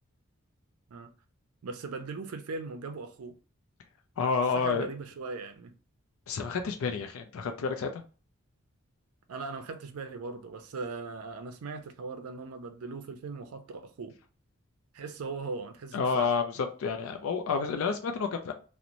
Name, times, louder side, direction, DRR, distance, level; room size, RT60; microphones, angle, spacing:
voice 1, 1.6-3.4 4.5-5.7 9.3-14.2 14.9-16.3, right 4 dB, 85° right, 0.4 m, -39 dB
voice 2, 4.2-4.9 6.3-8.0 15.9-18.5, left 5 dB, 75° left, 0.4 m, -29 dB
2.5 x 2.0 x 2.9 m
head